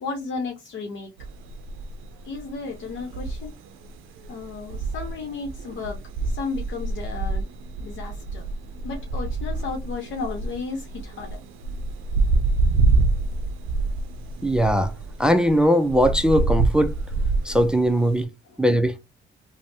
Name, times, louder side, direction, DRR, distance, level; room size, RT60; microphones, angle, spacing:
voice 1, 0.0-1.1 2.2-3.5 4.3-7.5 7.8-8.5 8.8-11.4 18.4-18.6, left 4 dB, 70° left, 0.9 m, -34 dB
sound 1, 1.2-18.2, right 3 dB, 90° right, 0.5 m, -27 dB
voice 2, 14.4-14.9 15.2-16.9 17.4-18.3 18.6-18.9, equal, 5° right, 0.4 m, -19 dB
3.3 x 2.0 x 2.7 m
cardioid pair, 90°, 20 cm